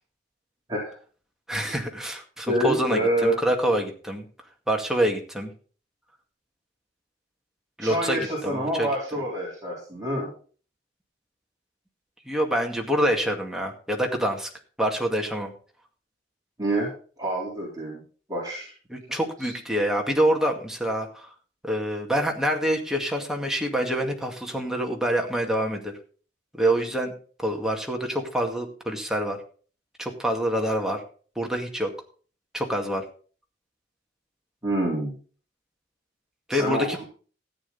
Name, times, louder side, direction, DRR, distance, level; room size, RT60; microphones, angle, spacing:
voice 1, 1.5-4.3 4.7-5.5 7.8-8.9 12.3-14.5 14.8-15.5 18.9-21.3 21.6-26.0 26.5-27.1 27.4-29.4 30.0-31.0 31.4-31.9 32.5-33.0 36.5-37.0, right 1 dB, 5° right, 1 dB, 2.1 m, -26 dB
voice 2, 2.5-3.4 7.8-10.3 16.6-16.9 17.2-18.0 18.3-18.7 19.4-19.5 34.6-35.1 36.5-37.0, right 1 dB, 20° right, -5 dB, 4.0 m, -27 dB
14.5 x 9.2 x 4.1 m, 0.40 s
head